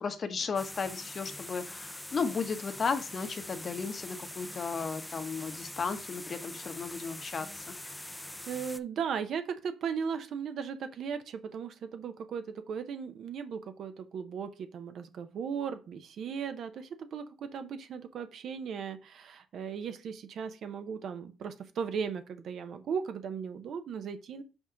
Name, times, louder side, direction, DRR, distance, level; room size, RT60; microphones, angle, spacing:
voice 1, 0.0-7.5 7.8-7.9, left 5 dB, 45° left, 8 dB, 1.0 m, -34 dB
sound 1, 0.6-8.8, left 1 dB, 10° left, 0.5 m, -43 dB
voice 2, 8.5-24.4, right 6 dB, 65° right, 9 dB, 0.8 m, -37 dB
5.4 x 3.8 x 5.7 m, 0.32 s
cardioid pair, 90°, 0 cm